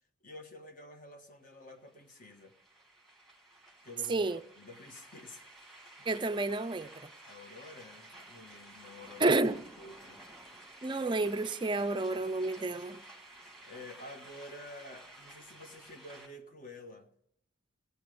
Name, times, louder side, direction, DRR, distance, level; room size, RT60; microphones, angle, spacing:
voice 1, 0.2-2.5 3.8-4.3 4.6-6.1 7.2-9.3 9.8-10.2 13.7-17.1, left 2 dB, 40° left, 1.3 m, -50 dB
sound 1, 1.8-16.3, right 2 dB, ahead, 1.9 m, -53 dB
voice 2, 4.1-4.4 6.1-7.1 9.2-9.6 10.8-13.0, right 2 dB, 25° right, 0.4 m, -30 dB
16.5 x 9.5 x 5.1 m
head